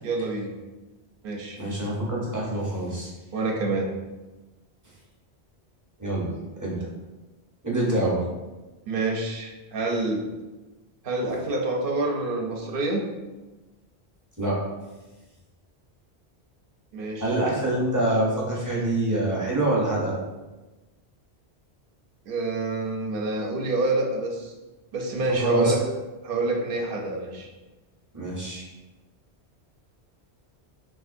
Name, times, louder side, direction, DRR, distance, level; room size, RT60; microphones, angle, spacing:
voice 1, 0.0-0.5 1.2-1.6 3.3-3.9 8.9-10.2 11.0-13.0 16.9-17.3 22.3-24.5 24.9-25.8 26.2-27.5, right 2 dB, 65° right, 1 dB, 0.7 m, -27 dB
voice 2, 1.6-3.1 6.0-6.3 6.6-6.8 7.6-8.2 14.4-14.6 17.2-20.2 25.3-25.7 28.1-28.6, right 1 dB, 20° right, -5 dB, 0.6 m, -25 dB
3.5 x 2.4 x 2.5 m, 1.1 s
omnidirectional pair, 1.1 m